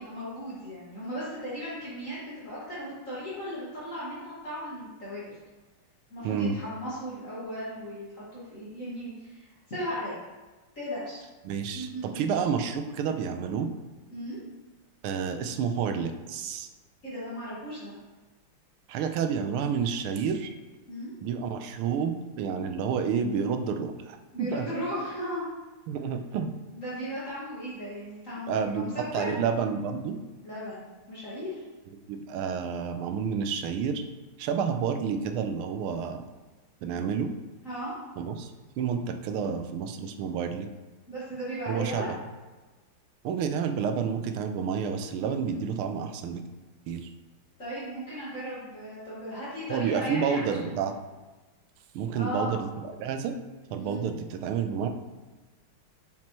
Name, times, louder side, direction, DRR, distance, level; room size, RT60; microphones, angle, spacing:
voice 1, 0.0-5.3 6.1-10.2 10.8-11.2 11.7-12.2 14.1-14.4 17.0-17.9 20.9-21.1 24.3-25.4 26.7-29.3 30.4-31.6 37.6-37.9 41.1-42.1 45.4-45.6 47.6-50.8 52.1-52.6 53.8-54.1, equal, 40° left, -10 dB, 2.1 m, -36 dB
voice 2, 6.2-6.6 11.4-13.7 15.0-16.7 18.9-20.5 21.2-24.6 25.9-26.5 28.5-30.2 32.1-34.0 34.4-36.2 36.8-37.3 38.2-40.7 41.7-42.2 43.2-46.4 46.9-47.1 49.7-50.9 51.9-53.3 53.7-54.9, right 6 dB, 85° right, 7 dB, 1.5 m, -30 dB
7.4 x 5.9 x 3.0 m, 1.2 s
omnidirectional pair, 2.3 m